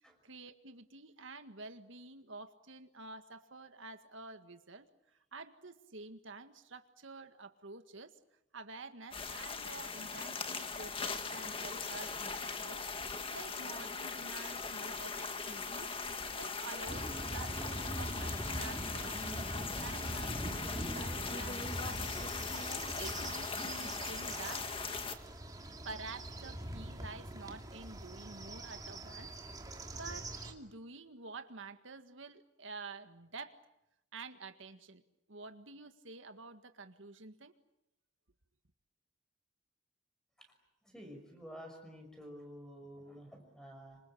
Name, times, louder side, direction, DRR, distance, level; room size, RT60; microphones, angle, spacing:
voice 1, 0.2-4.9 5.3-8.1 8.5-15.9 16.3-22.4 23.0-24.7 25.8-29.3 29.9-33.6 34.1-35.0 35.3-37.5, right 3 dB, 80° right, 8 dB, 1.8 m, -49 dB
sound 1, 9.1-25.1, left 4 dB, 25° left, 1.8 m, -40 dB
sound 2, 16.9-30.5, right 1 dB, 20° right, 2.6 m, -43 dB
voice 2, 40.8-44.0, equal, 5° left, 5 dB, 5.9 m, -51 dB
26.5 x 26.0 x 8.7 m, 0.84 s
head